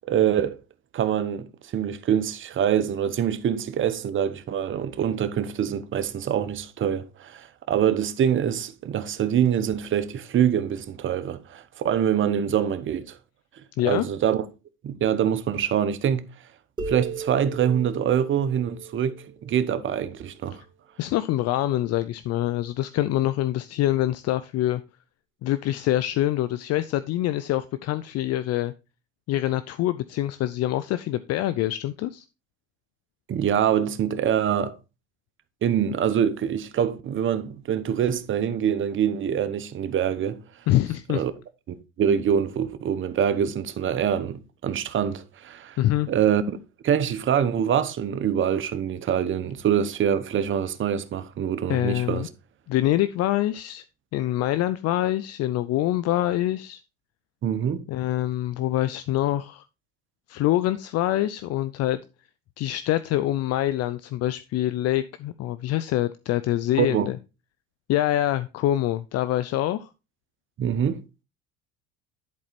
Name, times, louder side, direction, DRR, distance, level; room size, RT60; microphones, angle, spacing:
voice 1, 0.1-0.6 0.9-1.5 1.7-13.1 13.8-14.4 14.8-16.2 16.9-20.6 33.3-34.7 35.6-40.4 41.1-41.3 41.7-45.8 46.1-46.4 46.8-52.3 57.4-57.8 66.8-67.1 70.6-71.0, right 9 dB, 40° right, 1.0 m, -25 dB
sound 1, 16.8-20.3, right 4 dB, 15° right, 2.8 m, -36 dB
voice 2, 21.0-24.8 25.4-28.7 29.3-32.3 40.7-41.2 45.8-46.1 51.7-52.3 52.7-53.8 54.1-56.8 57.9-59.6 60.3-62.0 62.6-67.2 67.9-69.9, left 14 dB, 55° left, 0.5 m, -25 dB
11.0 x 4.3 x 4.1 m
supercardioid pair, 95°, 31 cm